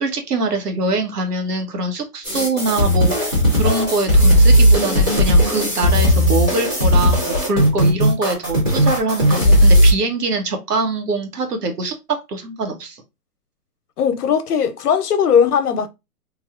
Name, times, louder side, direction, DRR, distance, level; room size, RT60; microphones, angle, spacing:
voice 1, 0.0-13.0, right 2 dB, 75° right, 1.2 m, -23 dB
sound 1, 2.2-9.9, equal, 15° right, 0.7 m, -15 dB
voice 2, 14.0-15.9, left 7 dB, 75° left, 0.7 m, -18 dB
3.3 x 2.3 x 2.4 m
hypercardioid pair, 160°, 47 cm